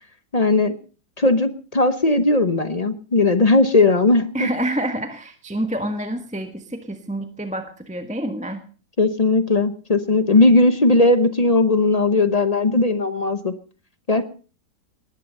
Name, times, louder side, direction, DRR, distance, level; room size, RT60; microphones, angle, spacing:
voice 1, 0.3-0.8 1.2-4.5 9.0-13.5 14.1-14.2, left 2 dB, 30° left, 11 dB, 0.7 m, -18 dB
voice 2, 4.3-8.6, right 1 dB, 5° right, 7 dB, 1.2 m, -27 dB
20.0 x 10.5 x 5.4 m, 0.38 s
omnidirectional pair, 1.9 m